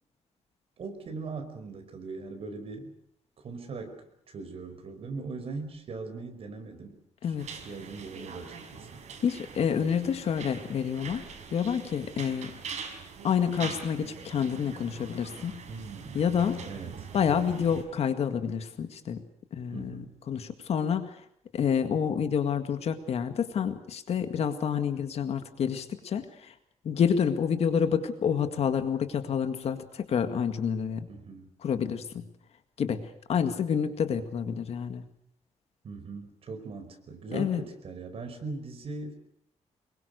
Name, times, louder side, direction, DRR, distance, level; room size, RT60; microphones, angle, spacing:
voice 1, 0.8-2.9 3.4-7.0 7.2-9.0 15.7-16.2 16.7-17.1 19.7-20.1 31.1-31.5 35.8-39.1, right 4 dB, 55° right, 6 dB, 5.0 m, -40 dB
sound 1, 7.4-17.8, right 6 dB, 75° right, 5.2 m, -43 dB
voice 2, 9.2-11.2 11.5-12.5 13.2-15.6 16.2-16.7 17.1-19.2 19.5-21.1 21.5-26.5 26.9-31.1 31.6-32.3 32.8-35.0 37.3-37.6, left 7 dB, 60° left, 8 dB, 1.9 m, -28 dB
25.5 x 22.0 x 6.6 m, 0.71 s
wide cardioid pair, 165°, 12 cm